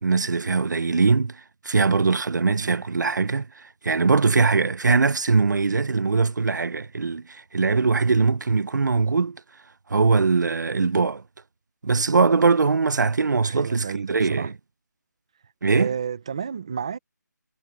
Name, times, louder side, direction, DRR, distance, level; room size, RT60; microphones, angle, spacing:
voice 1, 0.0-9.4 9.9-11.2 11.8-14.5 15.6-15.9, right 4 dB, 75° right, 0.7 m, -21 dB
voice 2, 13.4-14.5 15.6-17.0, right 7 dB, 20° right, 0.6 m, -31 dB
hypercardioid pair, 180°, 10 cm